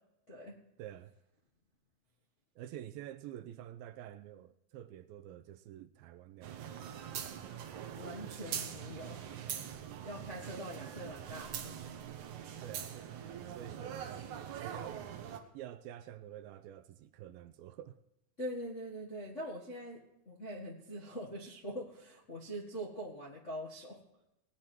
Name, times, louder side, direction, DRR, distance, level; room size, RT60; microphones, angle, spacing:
voice 1, 0.8-1.1 2.6-7.0 9.8-10.2 12.6-13.1 13.5-15.0 15.5-18.0, right 12 dB, 80° right, 2.4 m, -49 dB
sound 1, 6.4-15.4, right 9 dB, 65° right, 2.1 m, -43 dB
voice 2, 7.9-9.4 10.0-12.0 18.4-24.0, equal, 45° left, 0.9 m, -43 dB
19.0 x 9.8 x 4.5 m
omnidirectional pair, 4.4 m